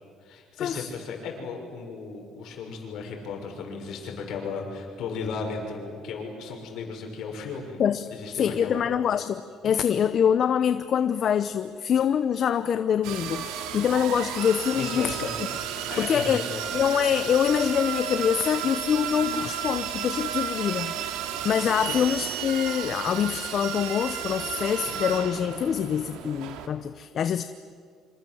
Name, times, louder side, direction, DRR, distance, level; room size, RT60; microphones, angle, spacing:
voice 1, 0.2-7.8 8.1-8.9 14.7-15.4 15.9-16.7 19.2-19.9 21.8-21.9, left 5 dB, 65° left, 2 dB, 6.3 m, -36 dB
voice 2, 8.3-15.3 16.0-16.4 16.7-21.2 21.4-27.4, left 8 dB, 45° left, 11 dB, 0.8 m, -25 dB
sound 1, 13.0-26.7, right 9 dB, 90° right, 2.4 m, -33 dB
27.0 x 26.0 x 7.9 m, 2.1 s
cardioid pair, 130°, 0 cm